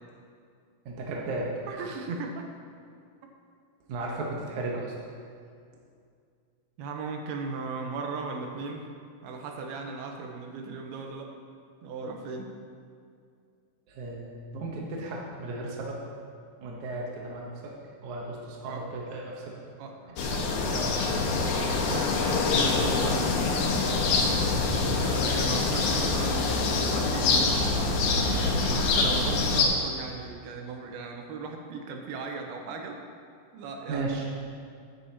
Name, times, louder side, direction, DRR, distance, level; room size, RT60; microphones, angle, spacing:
voice 1, 0.9-1.5 3.9-4.9 13.9-16.0 16.6-17.7 18.0-19.5 20.2-21.2 21.6-22.0 24.8-25.1 28.6-28.8 33.9-34.3, right 2 dB, 65° right, -3 dB, 2.1 m, -35 dB
voice 2, 1.7-2.5 6.8-8.9 9.2-11.3 11.8-12.5 18.6-18.9 19.8-20.6 21.8-23.3 24.9-27.6 28.2-33.0 33.5-34.1, right 4 dB, 90° right, 3 dB, 2.8 m, -37 dB
sound 1, 20.2-29.7, left 3 dB, 80° left, 3.0 m, -25 dB
11.5 x 10.5 x 2.9 m, 2.3 s
omnidirectional pair, 4.4 m